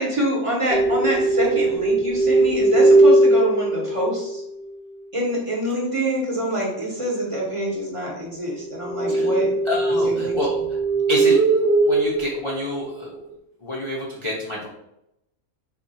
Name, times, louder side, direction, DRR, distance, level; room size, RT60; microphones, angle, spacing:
voice 1, 0.0-4.4 5.1-9.5 10.0-10.4, right 1 dB, 25° right, -4 dB, 0.8 m, -25 dB
sound 1, 0.7-4.4 8.8-13.3, right 2 dB, 85° right, 0.4 m, -19 dB
voice 2, 9.6-10.8 11.1-13.2 13.6-14.7, left 1 dB, 45° left, -5 dB, 0.4 m, -28 dB
3.6 x 2.3 x 3.9 m, 0.82 s
omnidirectional pair, 1.5 m